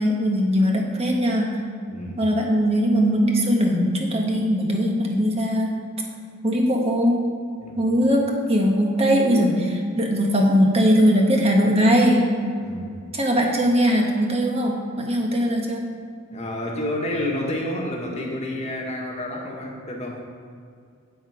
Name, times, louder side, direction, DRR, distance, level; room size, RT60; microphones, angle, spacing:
voice 1, 0.0-1.5 2.2-5.7 6.4-7.2 7.8-12.2 13.1-15.8, equal, 30° right, 0 dB, 1.4 m, -20 dB
voice 2, 1.9-2.2 7.6-7.9 12.6-13.0 16.3-20.2, left 1 dB, 30° left, -1 dB, 1.6 m, -29 dB
9.0 x 7.8 x 5.0 m, 2.2 s
head